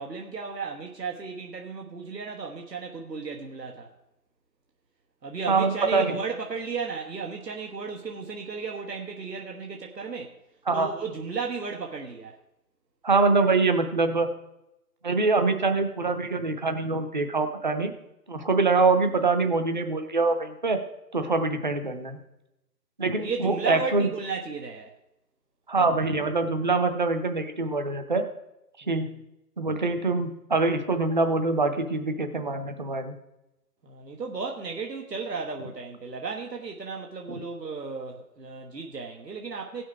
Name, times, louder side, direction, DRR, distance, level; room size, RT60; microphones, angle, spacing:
voice 1, 0.0-3.9 5.2-10.4 10.7-12.3 23.2-24.9 28.8-29.0 33.8-39.8, right 5 dB, 80° right, 1.5 m, -34 dB
voice 2, 5.5-6.1 10.7-10.9 13.0-14.3 15.0-17.9 18.3-20.8 21.1-22.2 23.0-24.0 25.7-28.2 28.9-29.1 29.6-33.1, right 3 dB, 30° right, 0.8 m, -24 dB
16.5 x 6.3 x 4.6 m
figure-of-eight pair, 155°, 49 cm